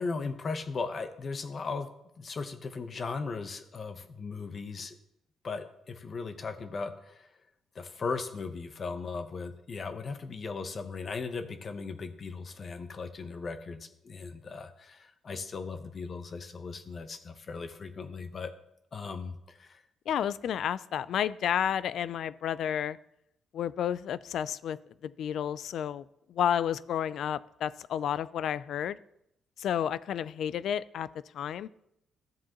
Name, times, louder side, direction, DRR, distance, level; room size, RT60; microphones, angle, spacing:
voice 1, 0.0-1.9 2.2-4.9 5.4-7.3 7.7-18.5 18.9-19.8, left 4 dB, 45° left, 8 dB, 0.9 m, -37 dB
voice 2, 20.1-23.0 23.5-29.0 29.6-31.1 31.3-31.7, left 9 dB, 70° left, 18 dB, 0.3 m, -31 dB
13.5 x 7.3 x 3.0 m, 0.78 s
cardioid pair, 90°, 0 cm